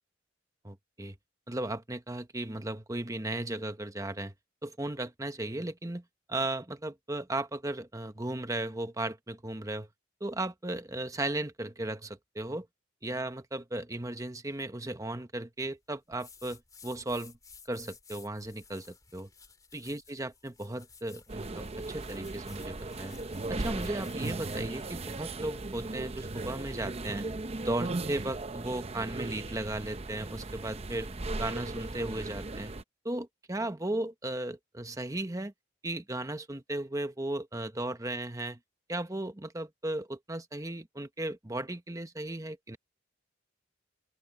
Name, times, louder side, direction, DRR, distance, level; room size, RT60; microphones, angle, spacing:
voice 1, 0.6-1.2 1.5-4.3 4.6-6.0 6.3-9.9 10.2-12.7 13.0-17.4 17.7-19.3 19.7-23.2 23.5-27.3 27.6-31.1 31.4-32.7 33.0-35.5 35.8-38.6 38.9-42.8, right 1 dB, 20° right, 1.1 m, -36 dB
sound 1, 16.1-25.2, left 5 dB, 20° left, 3.4 m, -55 dB
sound 2, 21.3-32.8, right 2 dB, 35° right, 0.7 m, -37 dB
open air
head